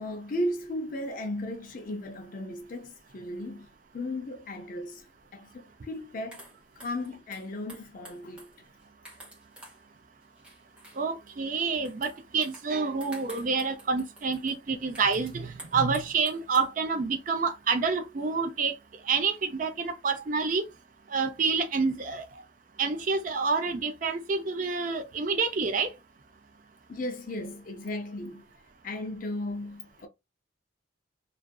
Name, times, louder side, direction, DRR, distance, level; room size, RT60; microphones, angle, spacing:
voice 1, 0.0-3.7 3.9-5.0 5.3-6.4 6.8-8.7 26.9-28.4 28.8-30.1, left 1 dB, 40° left, 0.4 m, -35 dB
sound 1, 5.9-6.0 6.3-9.8 10.2-11.3 11.8-16.7, right 1 dB, 5° right, 0.9 m, -50 dB
voice 2, 11.0-15.3 15.7-18.7 19.1-20.6 21.1-22.2 22.8-25.9, right 4 dB, 40° right, 0.4 m, -28 dB
2.5 x 2.4 x 2.2 m
head